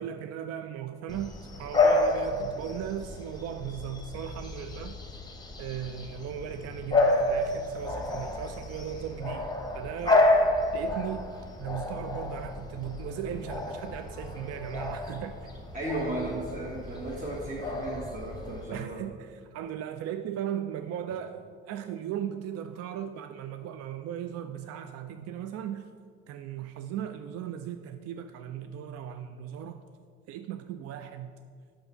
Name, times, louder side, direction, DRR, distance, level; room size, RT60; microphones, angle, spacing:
voice 1, 0.0-5.0 5.6-10.3 10.7-11.3 11.6-15.5 18.7-25.9 26.3-29.8 30.3-31.3, right 9 dB, 50° right, 9 dB, 0.4 m, -37 dB
Bark / Bird vocalization bird call bird song, 1.1-18.6, left 2 dB, 10° left, 1.2 m, -30 dB
voice 2, 15.7-19.0, right 1 dB, 25° right, -4 dB, 1.2 m, -35 dB
5.5 x 5.5 x 5.5 m, 2.1 s
hypercardioid pair, 65°, 33 cm